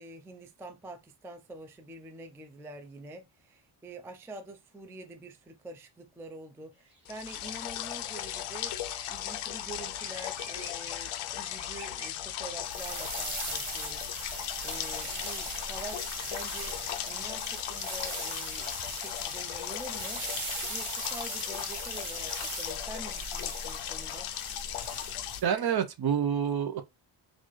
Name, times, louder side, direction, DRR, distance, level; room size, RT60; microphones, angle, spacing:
voice 1, 0.0-8.7 9.1-16.8 17.1-20.2 20.7-24.3, right 1 dB, 5° right, 0.3 m, -46 dB
sound 1, 6.7-19.5, right 3 dB, 20° right, 2.0 m, -55 dB
sound 2, 7.1-25.4, left 12 dB, 85° left, 0.6 m, -37 dB
sound 3, 12.6-25.5, right 3 dB, 80° right, 1.6 m, -40 dB
voice 2, 25.4-26.8, right 8 dB, 50° right, 0.6 m, -27 dB
4.1 x 2.5 x 3.0 m
wide cardioid pair, 120°, 50 cm